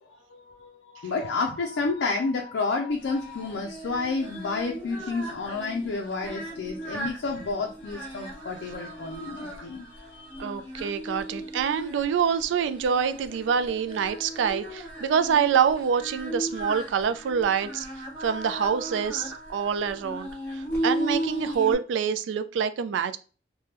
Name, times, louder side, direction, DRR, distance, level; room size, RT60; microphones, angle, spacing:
voice 1, 0.0-10.4 13.6-13.8, left 3 dB, 80° left, 0.4 m, -30 dB
Singing, 3.0-21.7, right 1 dB, 5° left, 1.0 m, -36 dB
voice 2, 10.4-17.9 18.2-23.2, right 7 dB, 85° right, 0.3 m, -26 dB
3.3 x 2.2 x 2.8 m
head